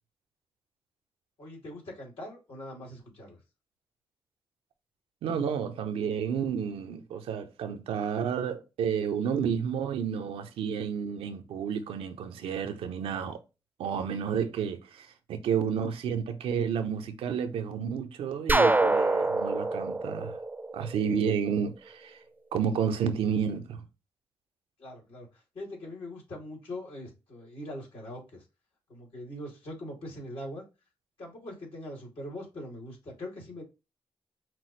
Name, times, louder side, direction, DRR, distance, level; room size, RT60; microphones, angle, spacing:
voice 1, 1.4-3.4 24.8-28.4 28.9-30.6 31.2-33.6, left 1 dB, 75° left, 2.5 m, -42 dB
voice 2, 5.2-13.4 13.8-20.4 20.7-22.2 22.5-23.8, right 7 dB, 90° right, 0.6 m, -31 dB
sound 1, 18.5-21.3, right 2 dB, 20° right, 0.5 m, -25 dB
5.9 x 2.1 x 3.0 m
cardioid pair, 55°, 9 cm